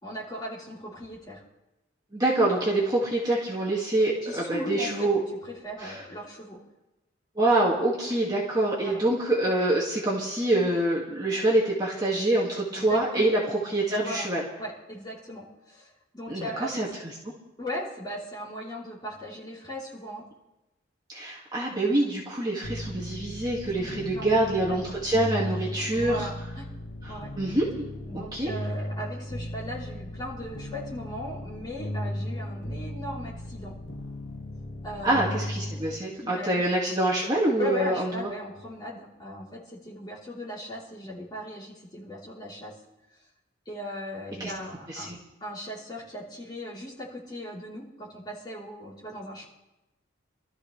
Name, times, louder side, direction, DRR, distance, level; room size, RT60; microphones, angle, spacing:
voice 1, 0.0-1.4 4.2-5.1 5.4-6.6 8.8-9.0 12.7-13.3 14.0-14.3 14.6-16.8 17.6-20.3 23.7-24.8 25.9-26.7 27.1-27.3 28.1-33.7 34.8-35.4 36.2-36.6 37.6-42.7 43.7-45.1 45.4-49.4, equal, 20° left, -5 dB, 3.7 m, -38 dB
voice 2, 2.1-5.2 5.8-6.0 7.4-14.4 16.3-17.1 21.1-26.3 27.0-27.7 28.1-28.5 35.0-38.3 44.4-44.5 44.9-45.2, right 1 dB, 20° right, -5 dB, 2.1 m, -26 dB
sound 1, 22.6-36.0, left 1 dB, 90° left, 1.7 m, -36 dB
24.0 x 13.5 x 3.3 m, 1.0 s
head